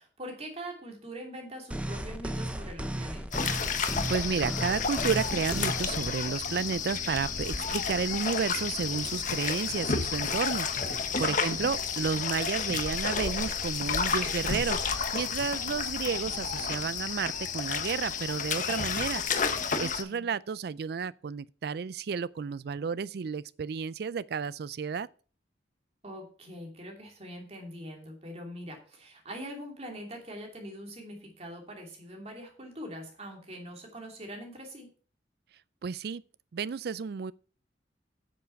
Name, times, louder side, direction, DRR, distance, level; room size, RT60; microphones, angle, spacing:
voice 1, 0.0-3.5 11.2-11.7 20.0-20.3 26.0-34.9, equal, 35° right, 2.8 m, -43 dB
sound 1, 1.7-6.1, right 1 dB, 5° right, 0.8 m, -35 dB
sound 2, 3.3-20.0, left 5 dB, 45° left, 1.1 m, -31 dB
voice 2, 4.1-19.2 19.5-25.1 35.8-36.2 36.5-37.3, right 6 dB, 60° right, 0.4 m, -32 dB
8.3 x 7.1 x 5.8 m
head